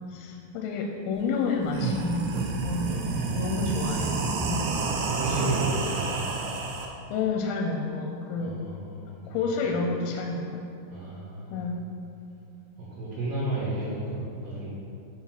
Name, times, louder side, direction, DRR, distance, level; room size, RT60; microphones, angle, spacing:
voice 1, 0.1-3.1 3.3-4.1 4.4-4.7 5.3-5.4 7.1-8.6 9.3-10.6 11.5-11.8, left 4 dB, 85° left, 2 dB, 3.2 m, -30 dB
sound 1, 1.2-1.3 1.6-6.9, right 4 dB, 85° right, 3.6 m, -29 dB
voice 2, 2.8-3.7 5.1-6.3 8.3-9.9 10.9-11.6 12.8-14.7, right 2 dB, 60° right, -10 dB, 2.4 m, -33 dB
9.7 x 4.2 x 5.8 m, 2.5 s
omnidirectional pair, 5.9 m